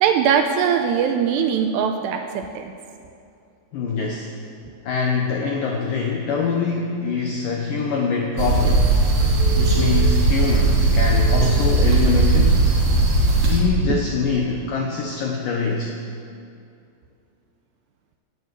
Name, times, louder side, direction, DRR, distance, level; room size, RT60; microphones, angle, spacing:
voice 1, 0.0-2.7, right 7 dB, 80° right, 6 dB, 2.6 m, -21 dB
voice 2, 3.7-4.3 4.8-8.9 9.6-12.7 13.5-15.9, left 4 dB, 80° left, 1 dB, 1.9 m, -24 dB
sound 1, 8.4-13.6, right 3 dB, 45° right, 3.1 m, -18 dB
17.5 x 9.3 x 7.6 m, 2.5 s
omnidirectional pair, 5.4 m